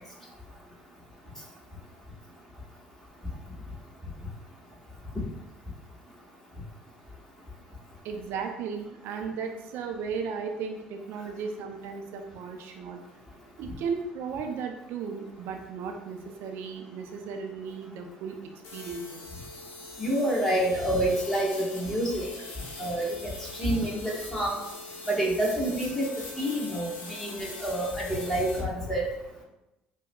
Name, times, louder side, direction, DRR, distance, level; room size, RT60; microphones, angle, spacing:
voice 1, 8.0-13.0 13.6-18.4 18.7-19.2, right 5 dB, 65° right, 4 dB, 0.5 m, -35 dB
sound 1, 18.6-28.6, left 2 dB, 55° left, 0.9 m, -43 dB
voice 2, 20.0-22.3 22.8-24.6 25.1-26.1 26.4-29.1, right 1 dB, 10° left, -4 dB, 1.4 m, -28 dB
5.3 x 2.1 x 2.3 m, 0.91 s
hypercardioid pair, 65°, 4 cm